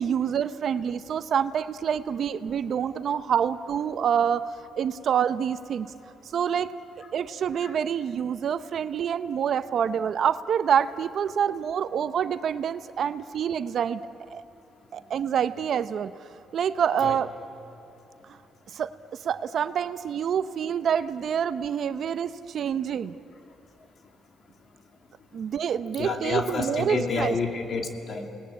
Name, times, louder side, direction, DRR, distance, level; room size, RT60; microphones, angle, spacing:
voice 1, 0.0-4.4 4.8-5.9 6.3-6.7 7.1-14.0 14.3-14.4 14.9-16.1 16.5-17.3 18.7-18.9 19.2-23.2 25.3-27.4, right 8 dB, 60° right, 12 dB, 0.8 m, -27 dB
voice 2, 26.0-28.3, left 4 dB, 50° left, 4 dB, 2.7 m, -29 dB
29.0 x 19.5 x 8.5 m, 2.8 s
cardioid pair, 90°, 0 cm